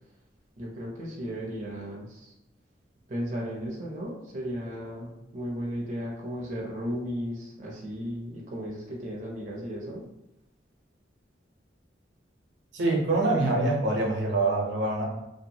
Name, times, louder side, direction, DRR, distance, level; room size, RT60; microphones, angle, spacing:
voice 1, 0.6-2.3 3.1-10.0, equal, 40° right, -3 dB, 0.5 m, -35 dB
voice 2, 12.7-15.0, right 2 dB, 80° right, -1 dB, 0.8 m, -25 dB
2.7 x 2.1 x 2.7 m, 0.90 s
head